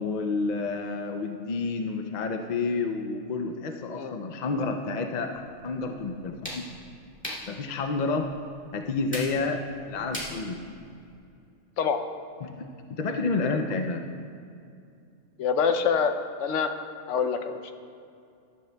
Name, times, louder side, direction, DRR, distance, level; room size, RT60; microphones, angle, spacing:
voice 1, 0.0-6.6 7.5-8.3 8.7-9.6 9.9-10.6 12.4-12.5 12.9-14.0, left 3 dB, 55° left, 4 dB, 0.5 m, -29 dB
sound 1, 5.3-11.2, equal, 10° left, 2.3 m, -42 dB
voice 2, 15.4-16.1 16.4-16.7 17.1-17.7, left 6 dB, 85° left, 8 dB, 1.0 m, -25 dB
14.0 x 12.0 x 2.2 m, 2.5 s
omnidirectional pair, 1.2 m